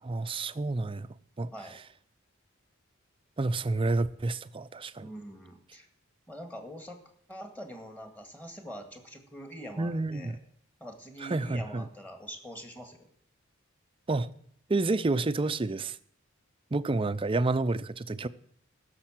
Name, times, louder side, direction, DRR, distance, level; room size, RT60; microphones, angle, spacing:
voice 1, 0.0-1.1 1.4-1.5 3.4-5.1 9.8-10.4 11.2-11.9 14.1-14.3 14.7-16.0 16.7-18.3, right 2 dB, 25° right, 0.5 m, -29 dB
voice 2, 5.0-5.9 6.3-7.0 7.3-10.4 10.8-13.1, equal, 10° left, 2.0 m, -44 dB
16.0 x 6.8 x 7.5 m
head